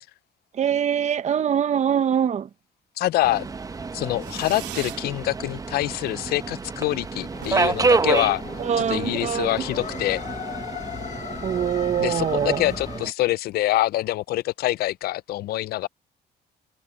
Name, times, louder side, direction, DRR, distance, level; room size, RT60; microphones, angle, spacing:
voice 1, 0.6-2.5 8.6-9.6 11.4-12.6, right 8 dB, 45° right, 1.2 m, -23 dB
voice 2, 3.0-3.5 3.9-8.4 8.8-10.2 12.0-15.9, left 16 dB, 65° left, 0.5 m, -25 dB
Subway metro underground, 3.2-13.1, right 4 dB, 20° right, 0.9 m, -29 dB
Fireworks, 4.2-5.1 5.4-6.0 6.3-6.4 6.6-6.7 7.0-7.1 7.3-9.0, right 17 dB, 90° right, 2.8 m, -41 dB
sound 1, 7.3-13.0, left 8 dB, 45° left, 1.5 m, -38 dB
cardioid pair, 110°, 17 cm